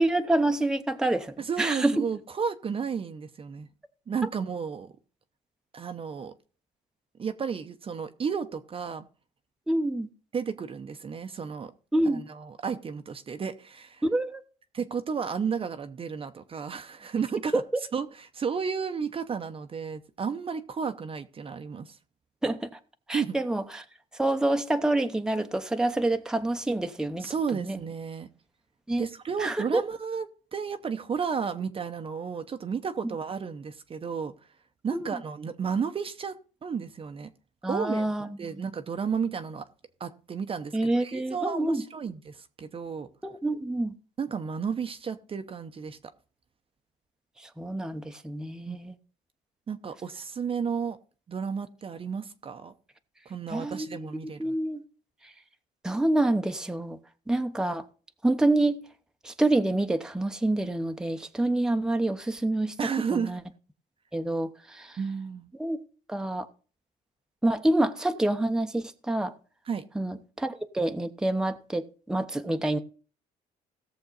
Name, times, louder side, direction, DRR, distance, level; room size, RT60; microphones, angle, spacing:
voice 1, 0.0-2.0 9.7-10.1 11.9-12.2 14.0-14.4 22.4-22.7 23.1-23.8 24.2-27.3 27.6-27.8 28.9-29.1 29.4-29.8 34.9-35.1 37.6-38.3 38.5-38.7 40.7-41.8 43.2-43.9 47.4-48.9 53.5-53.9 54.4-54.8 55.8-57.0 57.3-57.8 58.2-58.8 59.2-62.7 63.1-63.4 64.1-65.0 65.6-65.8 66.1-66.5 67.4-69.3 69.9-72.8, right 2 dB, 5° right, 0.8 m, -27 dB
voice 2, 1.4-3.7 4.1-4.9 5.7-6.3 7.2-9.0 10.3-11.7 12.0-14.0 14.7-17.6 17.9-22.0 23.1-23.4 27.2-28.3 29.0-34.3 34.8-36.4 36.6-37.3 37.7-39.7 40.0-43.1 44.2-46.0 48.7-48.8 49.7-51.0 51.3-52.7 53.3-54.5 62.8-63.3 65.0-65.5 69.7-69.8, right 6 dB, 35° right, 0.8 m, -32 dB
17.0 x 6.9 x 4.0 m
cardioid pair, 110°, 17 cm